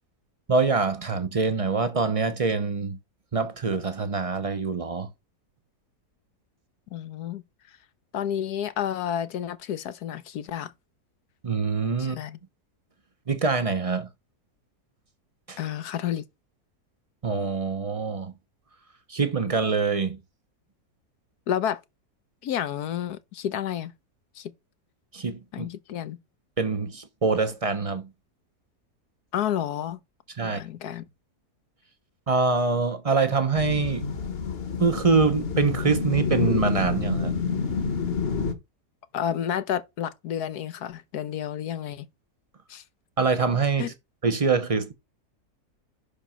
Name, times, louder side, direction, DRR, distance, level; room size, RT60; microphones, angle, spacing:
voice 1, 0.5-3.0 3.3-5.1 11.4-12.2 13.3-14.1 15.5-15.6 17.2-18.3 19.1-20.2 25.1-25.7 26.6-28.1 30.4-30.6 32.3-34.0 34.8-37.3 43.2-43.9 44.2-44.9, right 4 dB, 30° right, 0.6 m, -24 dB
voice 2, 6.9-7.4 7.7-7.8 8.1-10.7 12.0-12.4 15.6-16.2 21.5-21.8 22.4-23.9 24.3-24.5 25.5-26.2 29.3-30.0 30.4-31.0 39.1-42.1 42.7-42.8 43.8-43.9, left 10 dB, 75° left, 1.3 m, -30 dB
sound 1, 33.6-38.5, left 5 dB, 40° left, 1.2 m, -28 dB
6.0 x 5.0 x 5.6 m
omnidirectional pair, 1.7 m